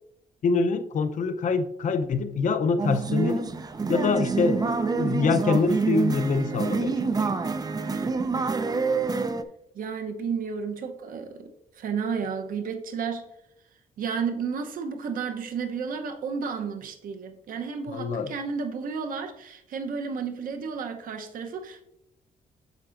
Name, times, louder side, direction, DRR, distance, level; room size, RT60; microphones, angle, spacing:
voice 1, 0.4-3.5 3.9-7.1 17.9-18.3, left 4 dB, 60° left, 0.6 m, -25 dB
sound 1, 2.8-9.4, right 4 dB, 25° right, 0.5 m, -27 dB
voice 2, 9.7-13.3 14.0-21.9, right 6 dB, 70° right, 0.9 m, -32 dB
9.1 x 6.7 x 2.5 m
cardioid pair, 115°, 15 cm